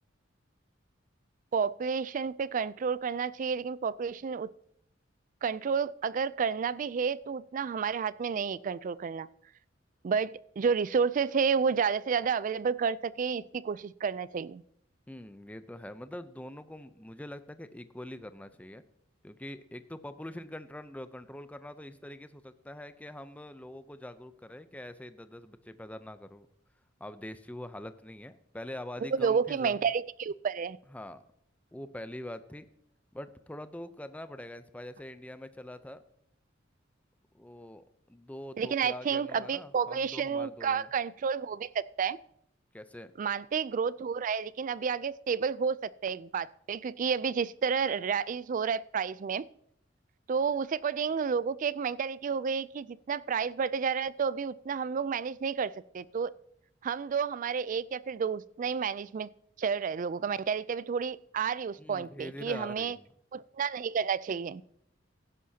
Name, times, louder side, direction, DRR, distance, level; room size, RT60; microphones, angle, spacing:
voice 1, 1.5-4.5 5.4-9.3 10.0-14.6 29.0-30.8 38.6-42.2 43.2-49.5 50.3-56.3 56.8-59.3 59.6-63.0 63.3-64.6, right 6 dB, 40° right, 19 dB, 0.3 m, -30 dB
voice 2, 15.1-18.8 19.2-26.5 27.0-29.8 30.9-31.2 31.7-32.7 33.1-36.0 37.3-40.9 42.7-43.1 61.8-63.1, left 1 dB, 10° left, 11 dB, 0.6 m, -44 dB
16.0 x 11.0 x 2.8 m, 0.72 s
head